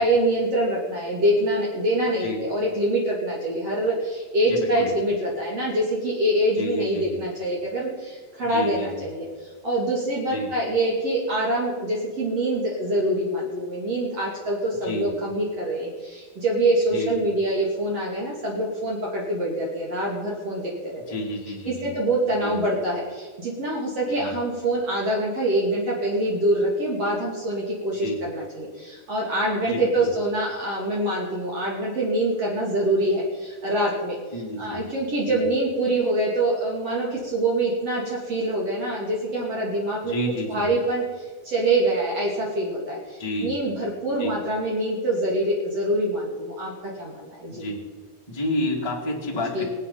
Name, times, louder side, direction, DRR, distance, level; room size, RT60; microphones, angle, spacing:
voice 1, 0.0-21.0 21.7-34.2 34.6-40.1 40.5-47.6 49.5-49.6, right 1 dB, 45° right, -4 dB, 3.5 m, -25 dB
voice 2, 4.5-4.9 6.5-7.2 8.5-9.0 10.3-10.5 14.8-15.1 16.9-17.1 21.1-21.9 22.4-22.6 24.1-24.3 27.9-28.2 29.6-30.1 34.3-34.8 35.3-35.4 40.0-40.6 43.2-43.5 44.2-44.3 47.5-47.8 48.3-49.6, left 1 dB, 10° left, -2 dB, 1.5 m, -30 dB
25.0 x 8.4 x 5.6 m, 1.4 s
omnidirectional pair, 4.2 m